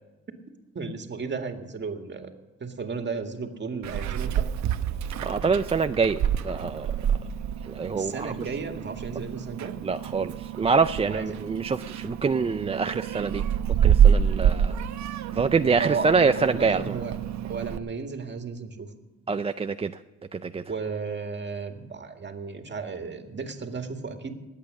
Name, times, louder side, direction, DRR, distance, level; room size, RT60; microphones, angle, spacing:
voice 1, 0.8-2.3 2.6-4.5 7.9-9.8 11.1-11.3 15.8-17.2 17.4-18.9 20.7-24.3, right 4 dB, 35° right, 5 dB, 1.9 m, -34 dB
Meow, 3.8-17.8, right 8 dB, 70° right, 0.9 m, -27 dB
voice 2, 5.2-6.9 7.6-8.5 9.8-13.4 13.8-14.8 15.3-16.9 19.3-20.0 20.3-20.6, right 5 dB, 20° right, 9 dB, 0.4 m, -25 dB
20.0 x 8.5 x 6.5 m, 1.2 s
cardioid pair, 90°, 30 cm